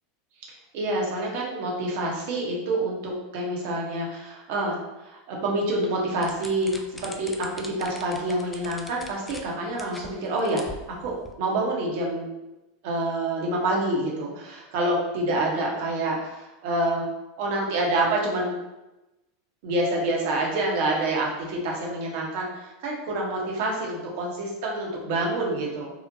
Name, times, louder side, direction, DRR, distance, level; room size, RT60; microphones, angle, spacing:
voice 1, 0.7-4.7 5.0-6.7 7.0-10.7 11.0-12.3 12.8-17.1 17.4-18.6 19.6-25.9, right 2 dB, 60° right, -2 dB, 0.7 m, -27 dB
sound 1, 6.2-9.5 9.8-10.1 10.4-11.3, left 1 dB, 10° left, 0.3 m, -42 dB
2.8 x 2.1 x 2.6 m, 1.0 s
hypercardioid pair, 90°, 0 cm